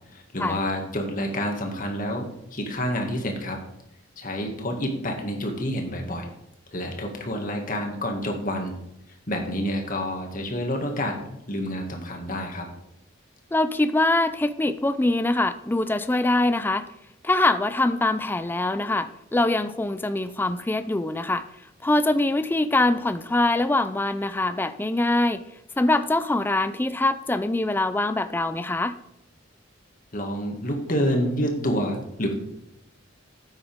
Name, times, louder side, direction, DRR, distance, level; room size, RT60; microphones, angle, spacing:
voice 1, 0.1-3.6 4.2-6.3 6.7-8.7 9.3-11.2 11.5-12.7 30.1-32.3, equal, 45° left, 2 dB, 2.1 m, -28 dB
voice 2, 13.5-16.9 17.2-21.4 21.8-25.4 25.8-29.0, left 2 dB, 10° left, 12 dB, 0.4 m, -23 dB
13.0 x 8.9 x 3.6 m, 0.81 s
head